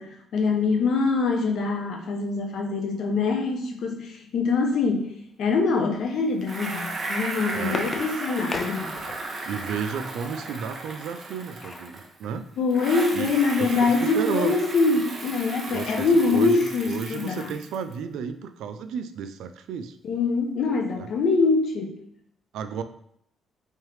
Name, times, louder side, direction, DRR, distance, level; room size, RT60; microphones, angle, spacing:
voice 1, 0.0-5.1 5.4-8.9 12.6-17.5 20.0-22.0, left 4 dB, 70° left, 3 dB, 0.7 m, -24 dB
Bicycle, 6.4-12.3 12.7-17.9, right 2 dB, 40° right, 0.8 m, -35 dB
sound 1, 7.0-9.5 11.1-12.0 12.4-12.5 12.8-13.0, left 3 dB, 35° left, 0.4 m, -37 dB
voice 2, 7.5-8.0 9.4-12.5 13.1-13.3 13.8-14.5 15.7-20.0 20.9-21.1 22.5-22.8, right 7 dB, 85° right, 9 dB, 0.3 m, -32 dB
3.5 x 3.3 x 3.1 m, 0.69 s
cardioid pair, 90°, 0 cm